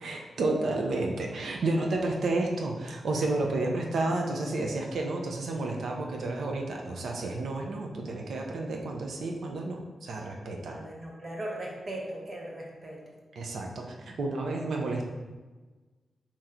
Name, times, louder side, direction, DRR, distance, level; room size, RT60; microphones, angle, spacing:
voice 1, 0.0-10.7 13.4-15.0, right 2 dB, 70° right, 1 dB, 0.7 m, -31 dB
voice 2, 10.5-13.0, right 1 dB, 35° right, -2 dB, 1.0 m, -39 dB
4.4 x 3.0 x 3.7 m, 1.3 s
wide cardioid pair, 110°, 0 cm